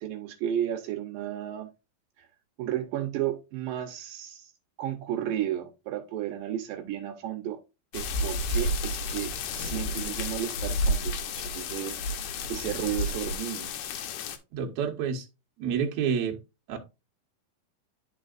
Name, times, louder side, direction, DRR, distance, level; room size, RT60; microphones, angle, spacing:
voice 1, 0.0-1.7 2.2-2.3 2.6-4.5 4.8-7.6 7.9-12.0 12.5-13.8, right 11 dB, 80° right, 2.5 m, -33 dB
sound 1, 7.9-14.4, left 1 dB, 75° left, 2.2 m, -31 dB
voice 2, 14.5-15.3 15.6-16.4 16.7-16.8, right 7 dB, 60° right, 2.3 m, -28 dB
11.5 x 4.0 x 2.5 m
omnidirectional pair, 4.1 m